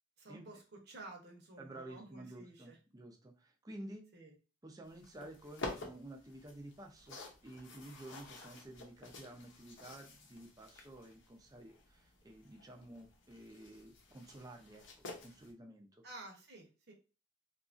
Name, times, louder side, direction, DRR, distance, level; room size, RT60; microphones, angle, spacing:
voice 1, 0.2-2.8 4.1-4.3 16.0-16.9, right 2 dB, 55° right, 1 dB, 0.9 m, -52 dB
voice 2, 1.6-4.1 4.6-16.0, right 1 dB, 20° right, 2 dB, 0.5 m, -52 dB
sound 1, 4.8-15.5, left 2 dB, 65° left, 0.7 m, -51 dB
2.8 x 2.4 x 2.5 m, 0.33 s
head